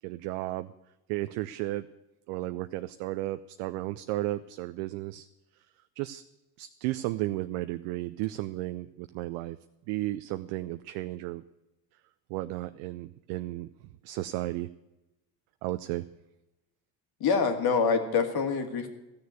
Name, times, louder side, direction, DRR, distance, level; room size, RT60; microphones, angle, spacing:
voice 1, 0.0-0.7 1.1-1.9 2.3-5.3 6.0-6.2 6.6-9.6 9.9-11.4 12.3-13.7 14.0-14.7 15.6-16.0, right 17 dB, 65° right, 11 dB, 0.6 m, -33 dB
voice 2, 17.2-18.9, left 5 dB, 50° left, 6 dB, 2.3 m, -25 dB
14.0 x 6.7 x 9.4 m, 0.97 s
hypercardioid pair, 75°, 47 cm